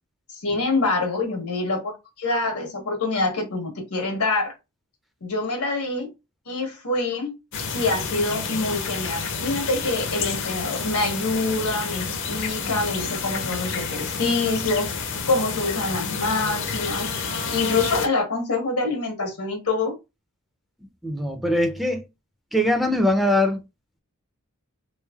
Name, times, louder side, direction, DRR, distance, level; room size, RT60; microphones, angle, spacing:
voice 1, 0.3-4.5 5.2-6.1 6.5-7.3 7.7-14.9 15.3-17.1 17.5-19.9, left 3 dB, 85° left, 1.2 m, -25 dB
sound 1, 7.5-18.1, left 5 dB, 60° left, 0.6 m, -29 dB
voice 2, 21.0-22.0 22.5-23.6, left 1 dB, ahead, 0.4 m, -21 dB
3.4 x 3.1 x 2.3 m
head